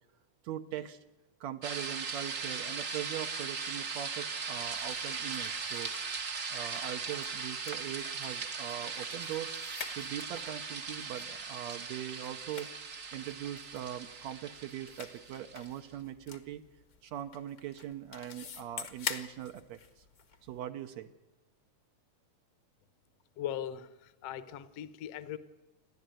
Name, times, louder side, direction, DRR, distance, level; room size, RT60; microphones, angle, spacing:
voice 1, 0.4-1.0 1.4-9.5 9.9-12.7 13.1-16.6 17.0-20.0 20.4-21.1, right 11 dB, 70° right, 6 dB, 2.1 m, -41 dB
sound 1, 1.6-15.7, right 5 dB, 50° right, 1.0 m, -39 dB
sound 2, 4.6-20.7, left 6 dB, 50° left, 1.1 m, -48 dB
voice 2, 23.4-25.4, left 10 dB, 65° left, 13 dB, 1.8 m, -39 dB
28.5 x 11.5 x 9.1 m, 1.1 s
omnidirectional pair, 3.4 m